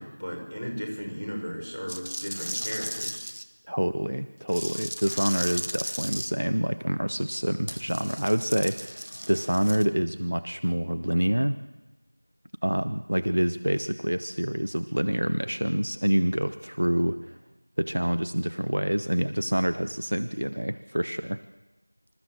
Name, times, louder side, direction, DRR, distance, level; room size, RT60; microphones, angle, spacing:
voice 1, 0.0-3.2, equal, 10° left, -15 dB, 4.3 m, -35 dB
sound 1, 1.9-3.4 4.5-6.3 7.7-9.9, equal, 80° right, 1.7 m, -35 dB
voice 2, 3.7-11.6 12.6-17.4 17.8-21.4, equal, 40° right, 10 dB, 0.6 m, -27 dB
26.0 x 13.5 x 7.4 m, 1.0 s
figure-of-eight pair, 180°, 0 cm